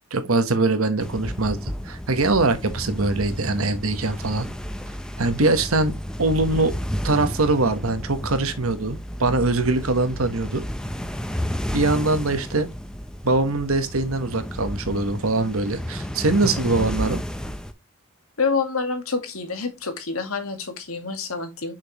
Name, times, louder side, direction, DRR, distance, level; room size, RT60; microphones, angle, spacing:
voice 1, 0.1-4.5 5.2-5.9 6.2-6.7 7.0-10.6 11.7-12.7 13.2-17.2, right 2 dB, 85° right, 1.2 m, -22 dB
sound 1, 1.0-17.7, equal, 5° left, 0.6 m, -32 dB
voice 2, 16.6-17.0 18.4-21.7, left 4 dB, 90° left, 1.9 m, -28 dB
6.4 x 6.1 x 3.0 m
head